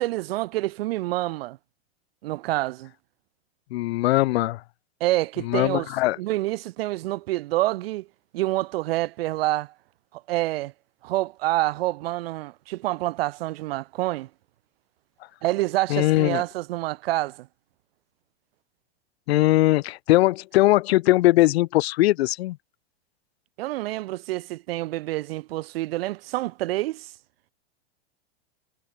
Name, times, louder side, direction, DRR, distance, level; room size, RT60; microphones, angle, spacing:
voice 1, 0.0-1.6 2.2-2.9 5.0-5.9 6.2-8.1 8.3-9.7 10.3-10.7 11.0-14.3 15.4-17.5 23.6-27.1, right 17 dB, 70° right, 0.7 m, -27 dB
voice 2, 3.7-4.6 5.4-6.2 15.9-16.4 19.3-22.6, left 17 dB, 80° left, 0.5 m, -20 dB
supercardioid pair, 140°, 31 cm